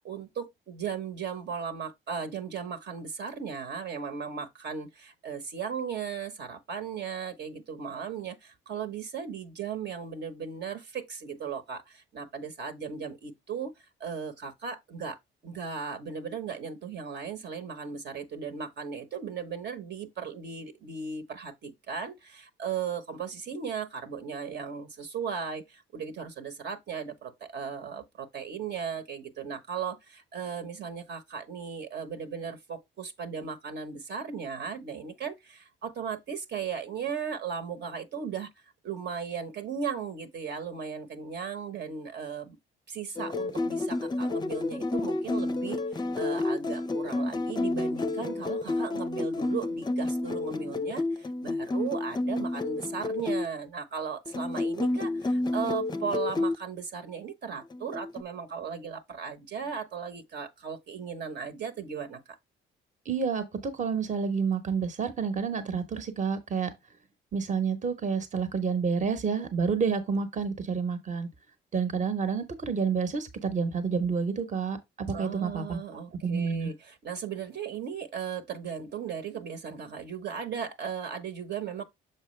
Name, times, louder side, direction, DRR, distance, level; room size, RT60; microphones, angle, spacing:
voice 1, 0.0-13.7 14.0-15.2 15.4-38.5 38.8-42.6 42.9-62.4 75.1-81.8, right 6 dB, 60° right, 1.1 m, -37 dB
sound 1, 43.2-53.5 54.3-56.6 57.7-58.2, left 2 dB, 20° left, 0.5 m, -30 dB
voice 2, 63.0-66.7 67.3-71.3 71.7-75.8 76.2-76.7, right 5 dB, 40° right, 1.0 m, -29 dB
6.7 x 4.6 x 3.2 m
cardioid pair, 90°, 20 cm